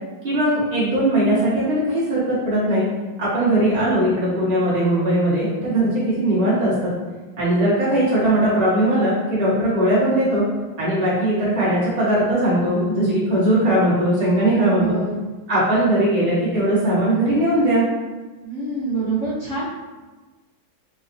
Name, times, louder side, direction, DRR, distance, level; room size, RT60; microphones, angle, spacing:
voice 1, 0.2-2.9 3.2-6.9 7.4-10.4 10.8-15.0 15.5-17.9, right 1 dB, 25° right, -10 dB, 1.0 m, -19 dB
voice 2, 14.5-15.1 18.4-19.6, right 4 dB, 45° right, -12 dB, 1.2 m, -26 dB
4.2 x 2.2 x 2.6 m, 1.3 s
omnidirectional pair, 2.1 m